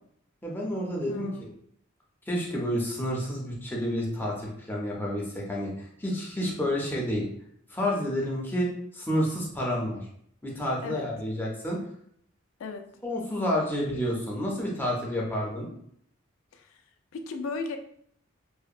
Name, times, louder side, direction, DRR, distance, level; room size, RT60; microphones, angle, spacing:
voice 1, 0.4-1.5 2.3-7.3 7.7-10.1 10.4-11.8 13.0-15.7, equal, 10° left, -3 dB, 0.5 m, -30 dB
voice 2, 1.1-1.5 10.8-11.1 12.6-12.9 16.5-16.8 17.1-17.8, left 4 dB, 70° left, 6 dB, 0.3 m, -36 dB
2.7 x 2.1 x 2.4 m, 0.67 s
head